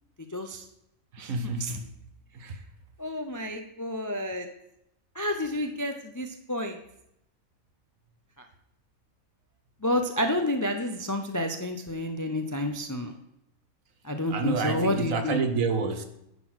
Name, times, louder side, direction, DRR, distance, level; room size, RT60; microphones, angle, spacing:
voice 1, 0.3-0.6 1.2-1.3 1.6-1.8 3.0-4.5 5.1-6.8 9.8-13.1 14.0-15.4, left 1 dB, 30° left, 5 dB, 0.3 m, -30 dB
voice 2, 1.1-1.9 2.3-2.6 14.3-16.0, right 4 dB, 75° right, 8 dB, 1.3 m, -29 dB
10.5 x 4.0 x 6.2 m, 0.80 s
omnidirectional pair, 1.4 m